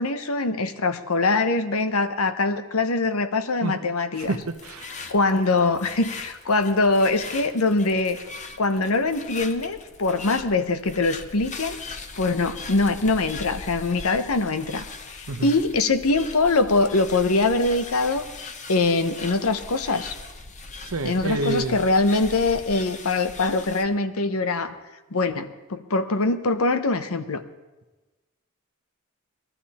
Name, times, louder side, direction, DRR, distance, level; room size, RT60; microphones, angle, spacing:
voice 1, 0.0-4.4 5.1-8.2 8.6-11.8 12.2-18.2 18.7-20.1 21.0-24.8 25.1-27.4, left 3 dB, 80° left, 10 dB, 1.0 m, -23 dB
sound 1, 4.2-23.8, left 3 dB, 35° left, 1.0 m, -40 dB
voice 2, 4.2-4.9 15.3-15.5 20.8-21.8, right 2 dB, 75° right, 9 dB, 0.9 m, -28 dB
20.0 x 12.5 x 4.3 m, 1.1 s
head